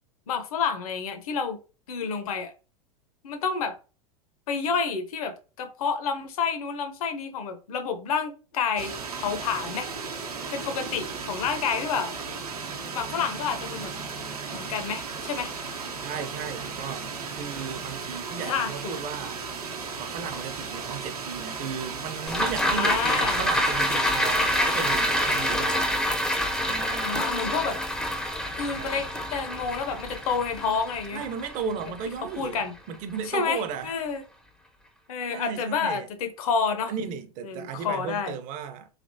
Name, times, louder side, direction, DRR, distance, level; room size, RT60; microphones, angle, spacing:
voice 1, 0.3-1.6 1.9-2.5 3.2-3.7 4.5-9.9 10.5-12.2 12.9-13.9 14.5-15.5 18.4-19.0 22.7-23.4 27.0-27.8 28.6-31.2 32.4-32.7 33.3-34.2 35.1-36.9 37.4-38.3, left 6 dB, 70° left, 0.7 m, -29 dB
sound 1, 8.8-25.5, right 5 dB, 90° right, 0.8 m, -35 dB
voice 2, 16.0-19.4 20.0-26.0 26.6-27.2 28.7-29.0 31.1-33.9 35.3-36.1 36.9-38.9, right 7 dB, 40° right, 0.6 m, -35 dB
sound 2, 22.3-32.8 33.2-33.3, equal, 5° left, 0.4 m, -27 dB
3.3 x 2.9 x 2.6 m
hypercardioid pair, 100°, 19 cm